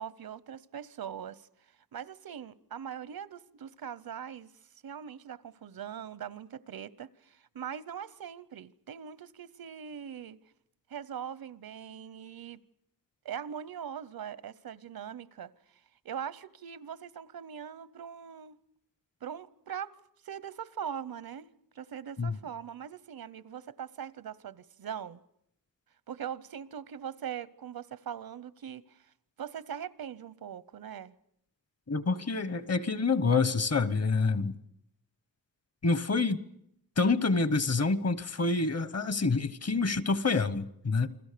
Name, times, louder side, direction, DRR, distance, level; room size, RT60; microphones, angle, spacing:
voice 1, 0.0-1.5 1.9-4.5 4.8-10.4 10.9-12.6 13.2-15.5 16.0-18.6 19.2-19.9 20.2-25.2 26.1-31.1, right 8 dB, 85° right, 0.9 m, -41 dB
voice 2, 31.9-34.5 35.8-36.4 37.0-41.1, left 4 dB, 45° left, 1.0 m, -27 dB
29.0 x 22.0 x 6.8 m
wide cardioid pair, 175°, 35 cm